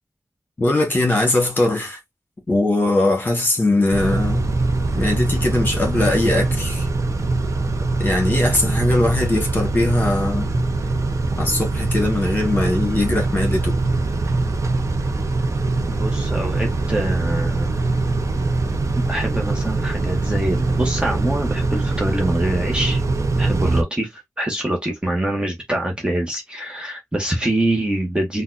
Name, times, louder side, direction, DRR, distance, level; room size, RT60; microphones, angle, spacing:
voice 1, 0.6-2.0 2.5-4.5 4.9-6.9 8.0-10.7 11.4-13.7, left 2 dB, 30° left, 1.4 m, -20 dB
Car / Idling / Accelerating revving vroom, 3.9-23.8, right 3 dB, 55° right, 0.6 m, -22 dB
voice 2, 15.9-17.7 18.9-23.0 23.4-28.4, right 1 dB, 15° right, 0.9 m, -24 dB
4.0 x 2.2 x 2.4 m
wide cardioid pair, 110°, 6 cm